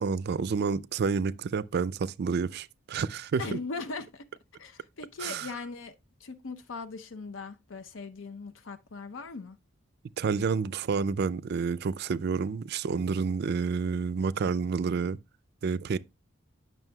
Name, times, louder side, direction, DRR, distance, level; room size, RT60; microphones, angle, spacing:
voice 1, 0.0-3.6 5.2-5.5 10.2-15.2 15.6-16.0, right 5 dB, 55° right, 0.4 m, -29 dB
voice 2, 3.4-4.3 4.6-5.9 6.2-9.6, left 4 dB, 85° left, 0.6 m, -39 dB
9.0 x 6.2 x 2.3 m
head